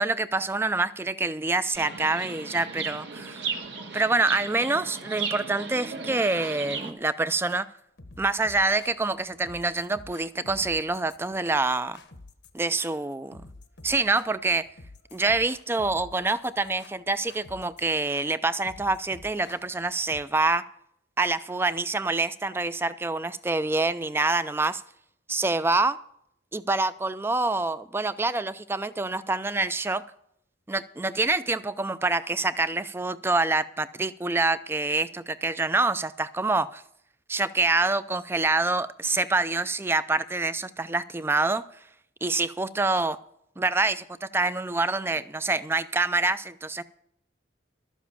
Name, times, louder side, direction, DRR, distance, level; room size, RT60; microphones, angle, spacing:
voice 1, 0.0-3.5 3.9-7.7 8.2-12.0 12.5-13.4 13.8-14.7 15.1-20.6 21.2-24.8 25.3-26.0 26.5-30.0 30.7-36.8 37.3-41.6 42.2-43.2 43.6-46.8, right 3 dB, 10° right, 15 dB, 0.4 m, -26 dB
Chirp tweet, 1.7-6.9, right 5 dB, 70° right, 1.4 m, -36 dB
sound 1, 7.5-20.2, left 2 dB, 70° left, 1.0 m, -50 dB
12.5 x 7.2 x 7.1 m, 0.73 s
head